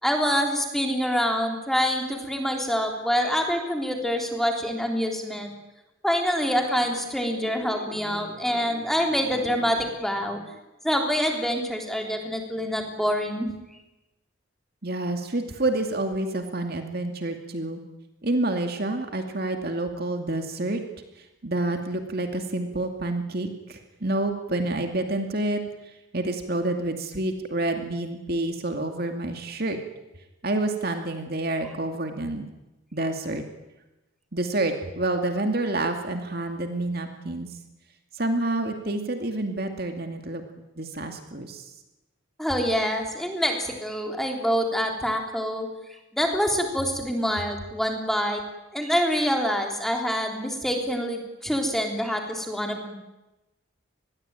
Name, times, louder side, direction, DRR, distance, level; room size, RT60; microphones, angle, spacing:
voice 1, 0.0-5.5 6.0-10.4 10.8-13.5 42.4-45.7 46.1-48.4 48.7-52.9, equal, ahead, 2 dB, 3.6 m, -26 dB
voice 2, 14.8-17.8 18.2-20.8 21.2-25.6 26.1-29.8 30.4-32.5 32.9-33.4 34.3-37.5 38.1-40.4 40.8-41.7, right 2 dB, 45° right, 5 dB, 2.4 m, -28 dB
26.5 x 21.0 x 9.1 m, 1.0 s
head